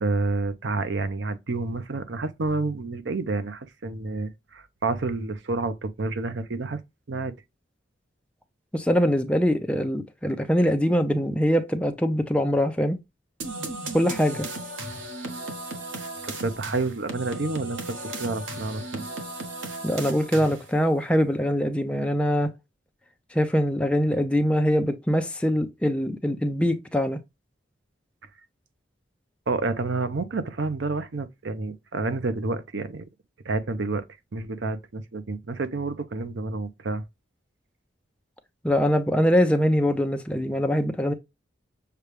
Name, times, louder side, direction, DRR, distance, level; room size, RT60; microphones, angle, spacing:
voice 1, 0.0-6.8 7.1-7.3 16.2-19.1 29.5-33.1 33.4-34.1 34.3-37.0, right 3 dB, 70° right, 0.6 m, -29 dB
voice 2, 8.7-13.0 13.9-14.5 19.8-22.5 23.3-27.2 38.6-41.1, equal, 5° left, 0.5 m, -23 dB
sound 1, 13.4-20.8, right 2 dB, 85° right, 1.1 m, -35 dB
6.6 x 2.3 x 3.2 m
head